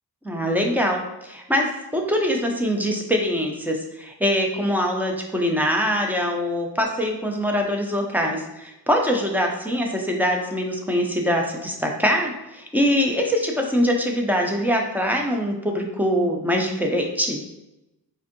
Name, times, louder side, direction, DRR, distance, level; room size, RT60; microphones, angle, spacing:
voice 1, 0.2-17.4, equal, 5° right, 1 dB, 0.4 m, -23 dB
4.3 x 2.6 x 2.5 m, 0.95 s
wide cardioid pair, 135°, 40 cm